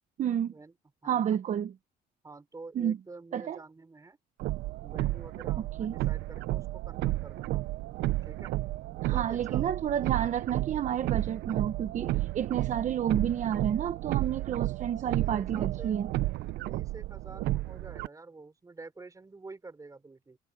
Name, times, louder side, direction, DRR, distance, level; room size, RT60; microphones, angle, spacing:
voice 1, 0.2-0.5 1.0-1.7 2.7-3.0 3.3-3.6 5.8-6.0 9.0-16.1, right 9 dB, 45° right, 1.0 m, -30 dB
voice 2, 1.0-1.4 2.2-4.2 4.8-7.6 8.3-8.5 9.1-9.7 15.1-16.0 16.5-20.4, right 3 dB, 20° right, 5.2 m, -48 dB
sound 1, 4.4-18.1, right 17 dB, 80° right, 0.8 m, -32 dB
cardioid pair, 110°, 17 cm